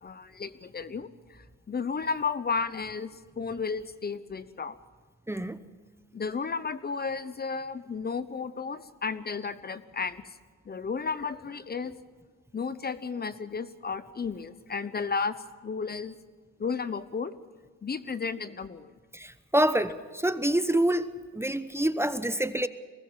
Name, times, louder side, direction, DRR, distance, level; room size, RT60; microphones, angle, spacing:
voice 1, 0.0-4.8 6.1-10.2 10.7-11.9 12.5-16.1 16.6-17.3 17.8-18.9, left 5 dB, 30° left, 1.0 m, -33 dB
voice 2, 5.3-5.6 19.1-21.1 21.3-22.7, right 1 dB, 10° right, 0.9 m, -26 dB
23.5 x 19.5 x 5.7 m
cardioid pair, 90°, 30 cm